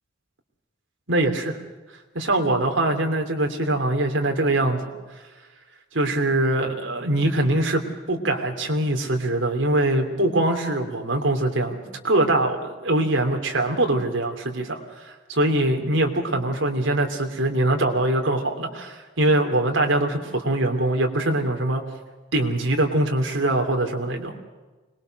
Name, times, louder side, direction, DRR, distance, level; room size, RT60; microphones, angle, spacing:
voice 1, 1.1-1.6 2.1-4.9 5.9-7.8 8.1-21.8 22.3-24.3, right 1 dB, 85° right, 3 dB, 3.0 m, -23 dB
26.0 x 21.0 x 6.6 m, 1.2 s
head